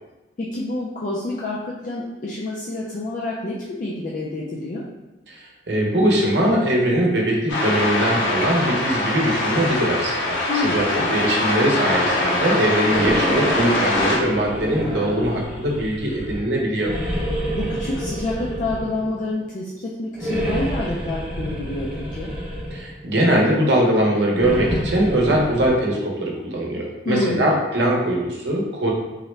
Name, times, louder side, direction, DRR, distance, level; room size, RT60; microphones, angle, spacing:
voice 1, 0.4-4.8 10.5-11.3 17.5-22.3 27.1-27.5, left 2 dB, 45° left, -5 dB, 0.3 m, -28 dB
voice 2, 5.3-16.9 22.7-28.9, right 1 dB, 70° right, -2 dB, 0.7 m, -21 dB
sound 1, 7.5-14.2, left 2 dB, 90° left, 0.6 m, -23 dB
sound 2, 12.8-16.4 16.8-19.2 20.1-22.9 24.3-25.7, equal, 10° right, 0.6 m, -28 dB
3.6 x 2.1 x 3.1 m, 1.0 s
head